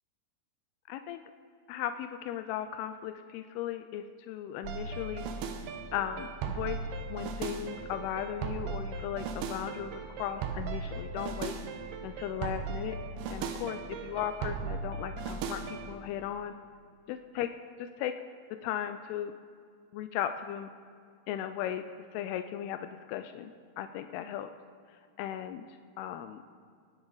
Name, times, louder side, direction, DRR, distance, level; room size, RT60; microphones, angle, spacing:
voice 1, 0.9-1.2 1.7-5.3 5.9-11.6 12.0-13.0 13.3-16.5 17.1-17.5 17.8-18.1 18.6-19.3 19.9-20.7 21.3-21.8 22.1-23.5 23.8-24.5 25.2-25.6 26.0-26.4, left 10 dB, 85° left, 8 dB, 2.5 m, -36 dB
sound 1, 4.6-15.9, right 5 dB, 85° right, 2.8 m, -37 dB
23.0 x 9.8 x 3.9 m, 2.1 s
omnidirectional pair, 4.5 m